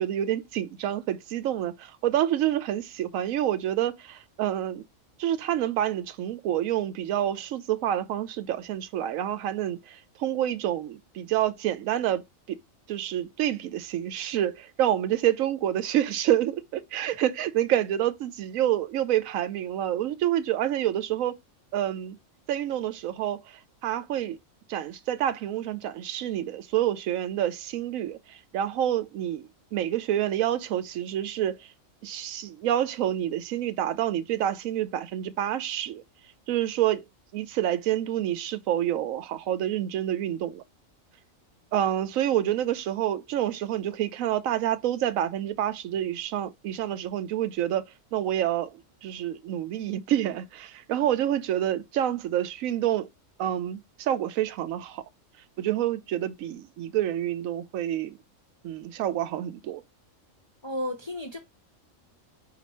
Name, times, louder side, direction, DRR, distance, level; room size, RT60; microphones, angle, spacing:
voice 1, 0.0-4.8 5.2-12.2 12.5-12.6 12.9-21.4 21.7-22.2 22.5-24.4 24.7-31.6 32.0-36.0 36.5-37.0 37.3-40.6 41.7-47.8 48.1-53.1 53.4-55.0 55.6-58.2 58.6-59.8, right 11 dB, 85° right, 1.0 m, -28 dB
voice 2, 60.6-61.4, left 1 dB, 35° left, 0.4 m, -32 dB
4.3 x 2.9 x 4.1 m
omnidirectional pair, 1.4 m